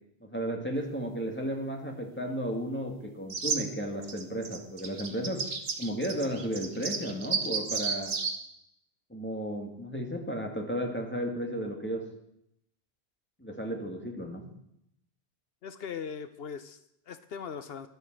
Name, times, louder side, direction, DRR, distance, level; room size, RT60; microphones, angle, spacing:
voice 1, 0.2-5.5 5.8-8.1 9.1-12.1 13.4-14.5, equal, 10° left, 1 dB, 2.1 m, -34 dB
sound 1, 3.3-3.6 4.0-8.3, right 5 dB, 70° right, 1.4 m, -32 dB
voice 2, 15.6-17.9, left 6 dB, 70° left, 11 dB, 0.9 m, -40 dB
11.5 x 8.0 x 7.5 m, 0.76 s
omnidirectional pair, 1.1 m